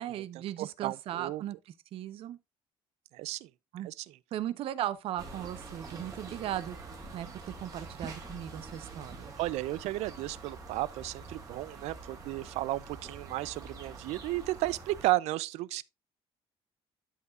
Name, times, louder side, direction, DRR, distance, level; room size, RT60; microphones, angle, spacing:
voice 1, 0.0-2.4 3.7-3.9 4.3-6.8 7.1-9.3, right 12 dB, 60° right, 0.8 m, -37 dB
voice 2, 0.6-1.4 3.1-3.5 3.8-4.0 9.4-15.8, right 17 dB, 90° right, 0.5 m, -33 dB
sound 1, 5.2-15.1, right 3 dB, 30° right, 2.8 m, -46 dB
12.0 x 5.6 x 2.4 m
cardioid pair, 160°, 11 cm